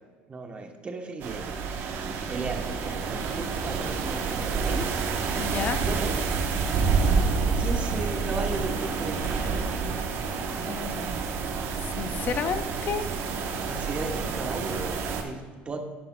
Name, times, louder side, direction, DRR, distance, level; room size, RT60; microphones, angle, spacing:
voice 1, 0.3-1.4 2.3-5.4 5.8-6.1 7.6-9.6 13.7-15.8, right 3 dB, 25° right, 4 dB, 1.0 m, -36 dB
sound 1, 1.2-15.2, right 5 dB, 60° right, 1.0 m, -28 dB
voice 2, 5.4-5.8 10.7-11.2 11.8-13.1, left 7 dB, 40° left, 10 dB, 0.6 m, -31 dB
10.5 x 9.8 x 2.3 m, 1.5 s
cardioid pair, 125°, 5 cm